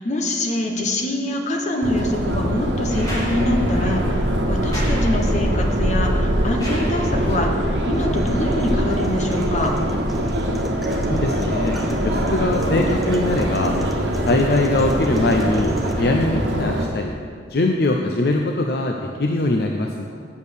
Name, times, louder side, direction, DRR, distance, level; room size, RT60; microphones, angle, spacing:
voice 1, 0.0-9.7, left 1 dB, 40° left, 1 dB, 1.1 m, -25 dB
Subway metro underground, 1.8-16.8, equal, 85° right, 1.2 m, -22 dB
sound 1, 2.9-7.5 9.1-9.2, equal, 20° left, 2.4 m, -36 dB
sound 2, 7.9-15.9, left 1 dB, ahead, 0.7 m, -39 dB
voice 2, 11.0-11.8 12.0-13.7 14.2-17.1 17.5-20.0, left 2 dB, 60° left, 2 dB, 0.6 m, -22 dB
8.2 x 7.1 x 7.0 m, 2.1 s
head